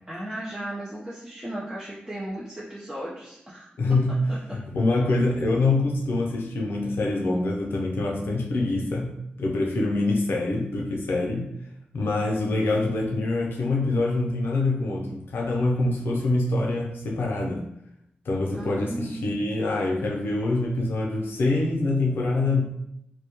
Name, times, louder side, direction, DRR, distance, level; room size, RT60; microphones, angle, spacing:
voice 1, 0.1-3.7 18.5-19.2, right 1 dB, 15° right, -7 dB, 0.6 m, -35 dB
voice 2, 3.8-4.2 4.5-9.1 9.4-11.5 11.9-17.6 18.3-22.6, left 2 dB, 80° left, 0 dB, 0.5 m, -25 dB
2.2 x 2.0 x 2.9 m, 0.78 s
cardioid pair, 55°, 4 cm